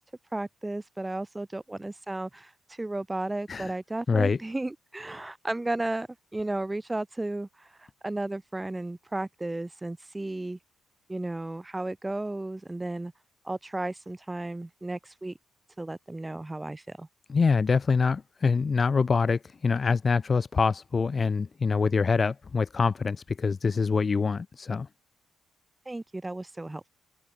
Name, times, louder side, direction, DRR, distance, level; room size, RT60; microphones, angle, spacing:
voice 1, 0.3-10.6 11.1-13.1 13.4-15.3 15.8-17.1 25.9-26.9, right 2 dB, 15° right, 2.2 m, -34 dB
voice 2, 4.1-4.4 17.3-24.9, left 5 dB, 35° left, 0.6 m, -25 dB
open air
cardioid pair, 90°, 0 cm